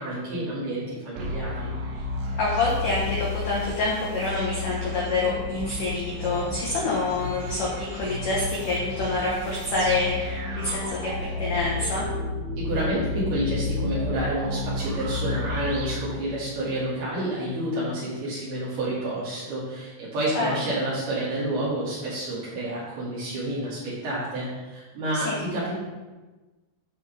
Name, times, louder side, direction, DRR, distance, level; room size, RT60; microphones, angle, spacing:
voice 1, 0.0-1.7 12.6-25.8, right 1 dB, 55° right, -10 dB, 4.0 m, -29 dB
sound 1, 1.2-16.8, left 2 dB, 90° right, 4.0 m, -32 dB
voice 2, 2.3-12.0 20.4-20.5 25.1-25.4, left 3 dB, 85° left, -5 dB, 1.8 m, -27 dB
12.5 x 5.4 x 3.4 m, 1.2 s
omnidirectional pair, 5.8 m